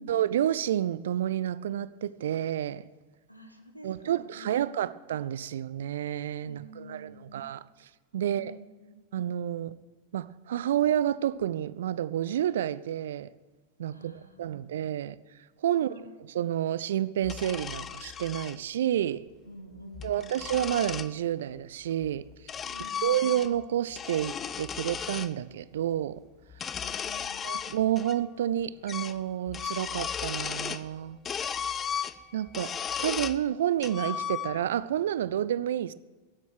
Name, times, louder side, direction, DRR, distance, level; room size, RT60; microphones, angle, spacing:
voice 1, 0.1-2.9 3.8-7.6 8.1-8.6 9.1-9.7 10.1-13.3 13.8-15.2 15.6-19.2 20.0-22.3 23.0-26.2 27.4-31.2 32.3-32.7 33.0-35.9, right 11 dB, 60° right, 0.5 m, -29 dB
voice 2, 3.3-4.9 6.4-7.5 8.2-9.0 13.9-14.7 15.7-16.1 19.4-20.5 22.7-23.2 26.8-27.5, right 1 dB, 90° left, 1.5 m, -48 dB
sound 1, 17.2-18.6 19.8-21.1 22.0-23.7 23.9-25.3 26.5-28.2 28.4-28.5 28.9-29.2 29.5-30.9 31.3-33.4 33.8-34.8, left 8 dB, 25° left, 0.5 m, -35 dB
15.5 x 8.4 x 9.1 m
figure-of-eight pair, 90°, 0 cm